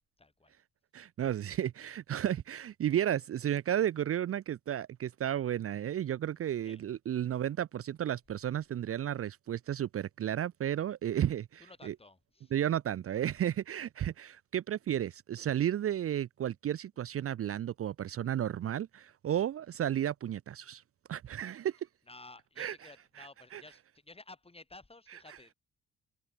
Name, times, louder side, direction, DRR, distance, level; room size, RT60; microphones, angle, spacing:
voice 1, 0.2-0.5 6.6-6.8 11.6-12.5 22.1-25.5, left 2 dB, 20° left, 5.3 m, -54 dB
voice 2, 0.9-11.9 12.5-20.8 21.1-21.8 22.6-22.8 23.2-23.3 23.5-23.6, right 11 dB, 50° right, 0.6 m, -33 dB
cardioid pair, 90°, 30 cm